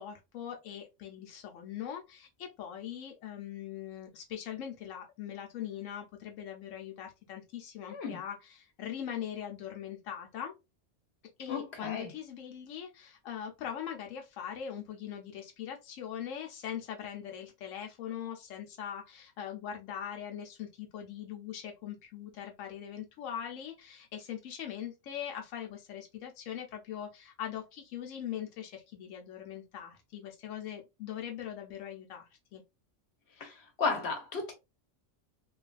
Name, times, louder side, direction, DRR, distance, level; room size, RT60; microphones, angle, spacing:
voice 1, 0.0-10.5 11.4-32.6, left 9 dB, 85° left, 1.0 m, -41 dB
voice 2, 7.9-8.2 11.5-12.1 33.4-34.5, left 4 dB, 60° left, 1.0 m, -34 dB
3.1 x 2.4 x 2.3 m
omnidirectional pair, 1.3 m